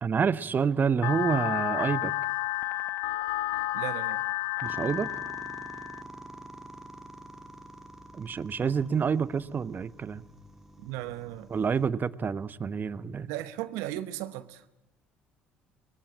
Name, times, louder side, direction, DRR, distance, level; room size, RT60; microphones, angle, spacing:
voice 1, 0.0-2.1 4.6-5.1 8.1-10.2 11.5-13.3, right 6 dB, 35° right, 1.1 m, -28 dB
sound 1, 1.0-6.0, left 15 dB, 70° left, 0.9 m, -31 dB
voice 2, 3.7-4.2 10.8-11.5 13.3-14.6, right 14 dB, 70° right, 1.0 m, -36 dB
sound 2, 4.6-11.9, right 1 dB, 5° right, 2.3 m, -47 dB
24.0 x 21.5 x 8.8 m
hypercardioid pair, 60°, 5 cm